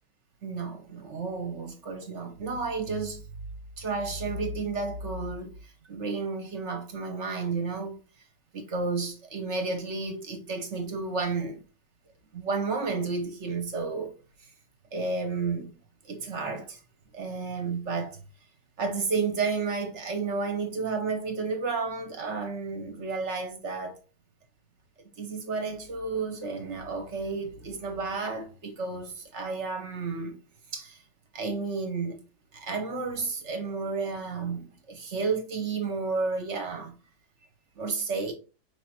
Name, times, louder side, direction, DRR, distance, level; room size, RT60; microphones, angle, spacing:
voice 1, 0.4-3.2 3.8-8.0 8.5-11.6 12.3-14.1 14.4-14.5 14.9-15.7 16.0-16.8 17.1-18.2 18.8-24.0 25.2-30.4 30.7-31.0 31.3-32.2 32.5-36.9 37.8-38.3, right 4 dB, 55° right, 0.9 m, -32 dB
4.8 x 3.1 x 2.8 m
omnidirectional pair, 1.7 m